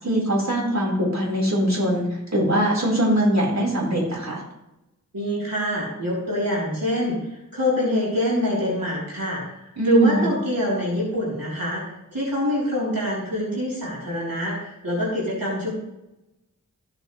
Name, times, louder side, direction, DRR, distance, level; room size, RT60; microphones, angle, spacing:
voice 1, 0.0-4.4 9.8-10.3, right 1 dB, 50° right, -3 dB, 4.5 m, -22 dB
voice 2, 5.1-9.4 9.8-11.8 12.1-15.7, left 1 dB, 85° right, -6 dB, 3.7 m, -25 dB
15.0 x 8.1 x 3.2 m, 0.92 s
wide cardioid pair, 45°, 33 cm